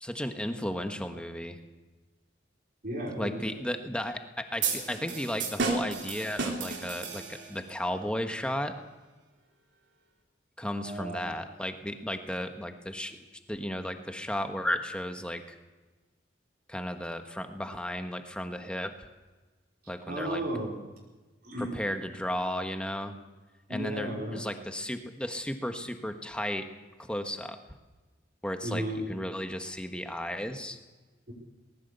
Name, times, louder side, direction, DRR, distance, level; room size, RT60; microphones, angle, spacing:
voice 1, 0.0-1.6 3.2-8.7 10.6-13.2 13.5-15.6 16.7-19.1 19.9-20.4 21.6-23.1 23.7-26.7 27.0-27.6 28.4-30.8, left 1 dB, 5° left, 6 dB, 1.4 m, -34 dB
voice 2, 2.8-3.6 10.8-11.3 20.1-20.8 21.4-21.7 23.7-24.5 28.6-29.1 31.3-31.4, right 1 dB, 50° right, -1 dB, 4.5 m, -34 dB
sound 1, 4.6-7.7, right 4 dB, 70° right, 3.6 m, -33 dB
20.0 x 17.0 x 8.2 m, 1.2 s
head